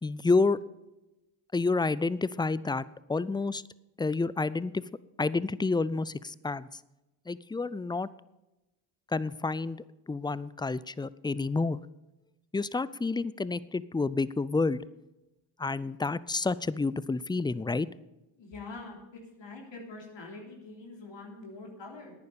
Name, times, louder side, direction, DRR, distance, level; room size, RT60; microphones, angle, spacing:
voice 1, 0.0-0.6 1.5-3.6 4.0-4.8 5.2-6.7 7.3-8.1 9.1-11.8 12.5-14.8 15.6-17.9, left 3 dB, 10° left, 19 dB, 0.4 m, -29 dB
voice 2, 18.4-19.0 19.4-22.1, left 3 dB, 60° left, 0 dB, 3.5 m, -44 dB
10.5 x 9.5 x 6.8 m, 1.0 s
supercardioid pair, 55°, 50 cm